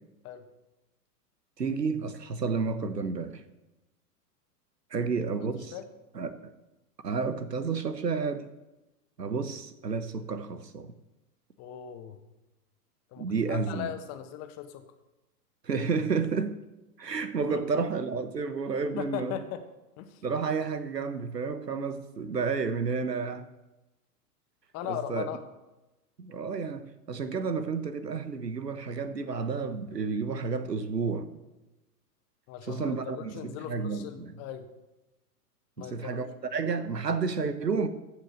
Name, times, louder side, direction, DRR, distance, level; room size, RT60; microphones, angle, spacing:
voice 1, 1.6-3.4 4.9-5.7 6.1-6.5 7.0-8.5 9.2-10.9 13.2-13.9 15.6-16.6 17.0-19.4 20.2-23.5 24.9-25.3 26.2-31.4 32.6-34.3 35.8-37.9, right 5 dB, 85° right, 1.2 m, -31 dB
voice 2, 11.6-12.2 13.1-14.8 17.5-17.6 19.0-19.6 20.0-20.2 24.7-25.5 32.5-34.7 35.8-36.3, left 10 dB, 35° left, 1.5 m, -38 dB
14.5 x 6.5 x 6.5 m
figure-of-eight pair, 110°, 47 cm